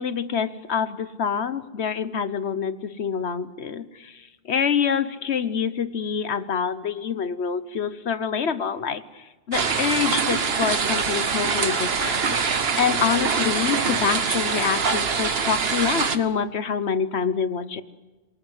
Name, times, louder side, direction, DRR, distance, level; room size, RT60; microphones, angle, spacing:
voice 1, 0.0-4.1 4.5-12.4 12.8-17.8, left 7 dB, 80° left, 13 dB, 1.4 m, -26 dB
sound 1, 9.5-16.2, right 5 dB, 70° right, 1.4 m, -24 dB
27.5 x 19.0 x 8.1 m, 1.2 s
omnidirectional pair, 1.1 m